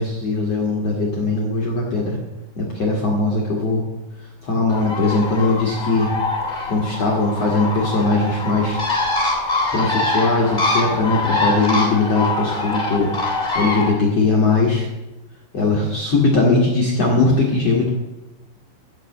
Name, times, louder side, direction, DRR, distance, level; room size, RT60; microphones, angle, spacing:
voice 1, 0.0-2.2 2.6-3.8 4.4-6.1 6.7-8.8 9.7-13.1 13.5-14.8 15.5-17.9, left 3 dB, 70° left, -3 dB, 1.5 m, -19 dB
Bird, 4.7-13.9, left 2 dB, 20° left, 1.1 m, -24 dB
13.5 x 6.3 x 8.3 m, 1.0 s
omnidirectional pair, 5.8 m